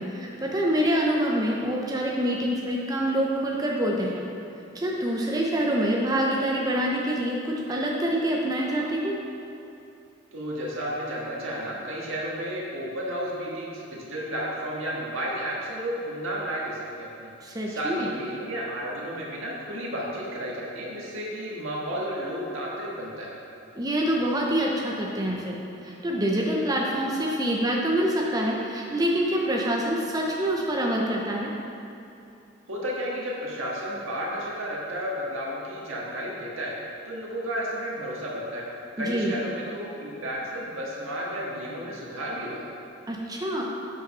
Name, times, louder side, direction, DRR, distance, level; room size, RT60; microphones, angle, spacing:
voice 1, 0.0-4.2 4.7-9.2 17.4-18.1 23.7-31.5 39.0-39.3 43.1-43.6, right 1 dB, 20° right, -2 dB, 0.6 m, -26 dB
voice 2, 10.3-23.3 32.7-36.7 37.0-38.6 39.0-42.7, equal, 90° right, -4 dB, 1.7 m, -32 dB
8.1 x 5.1 x 5.4 m, 2.8 s
head